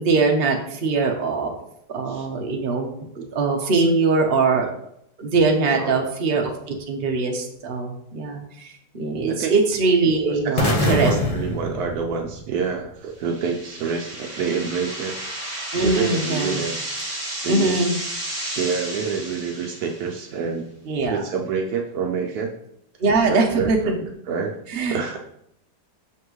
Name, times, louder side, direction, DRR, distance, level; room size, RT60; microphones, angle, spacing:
voice 1, 0.0-1.5 1.9-4.7 5.2-11.2 15.7-16.6 17.5-18.0 20.9-21.2 23.0-23.8 24.7-25.2, right 3 dB, 40° right, 2 dB, 1.0 m, -22 dB
voice 2, 5.7-6.1 9.3-9.6 10.3-15.2 15.8-17.0 17.4-17.8 18.6-20.7 21.1-22.5 23.3-24.5 24.9-25.2, right 5 dB, 70° right, 3 dB, 1.1 m, -27 dB
sound 1, 10.6-12.7, left 1 dB, 35° left, 0.6 m, -24 dB
sound 2, 13.2-20.2, right 1 dB, 20° right, 1.4 m, -32 dB
6.6 x 5.8 x 3.1 m, 0.74 s
omnidirectional pair, 1.8 m